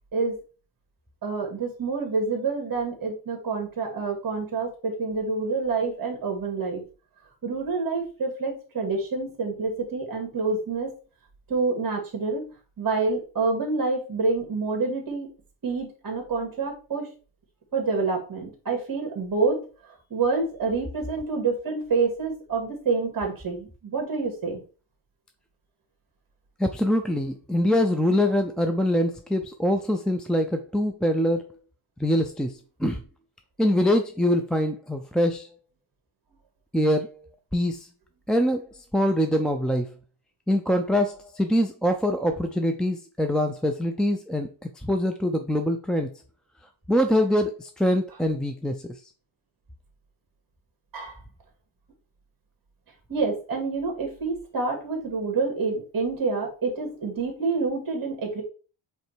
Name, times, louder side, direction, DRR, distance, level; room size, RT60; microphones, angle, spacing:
voice 1, 1.2-6.8 7.4-10.9 11.5-12.4 12.8-15.3 15.6-17.1 17.7-19.6 20.1-24.6 50.9-51.2 53.1-58.4, right 4 dB, 45° right, 2 dB, 2.4 m, -27 dB
voice 2, 26.6-31.4 32.0-33.0 33.6-35.5 36.7-37.1 37.5-37.9 38.3-38.7 38.9-39.9 40.5-44.5 44.8-46.1 46.9-48.9, equal, ahead, 5 dB, 0.3 m, -24 dB
8.1 x 3.2 x 4.5 m, 0.35 s
wide cardioid pair, 170°, 49 cm